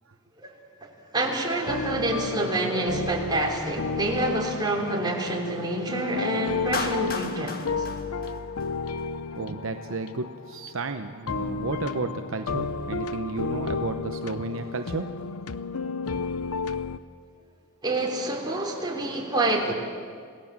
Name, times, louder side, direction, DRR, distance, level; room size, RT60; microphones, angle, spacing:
voice 1, 0.8-7.9 17.8-19.7, right 2 dB, 20° right, 0 dB, 3.4 m, -27 dB
sound 1, 1.7-17.0, left 4 dB, 90° left, 0.8 m, -32 dB
Clapping, 6.7-9.0, left 4 dB, 45° left, 1.6 m, -34 dB
voice 2, 9.4-15.1, right 3 dB, 65° right, 6 dB, 0.9 m, -32 dB
27.5 x 18.0 x 7.4 m, 2.1 s
head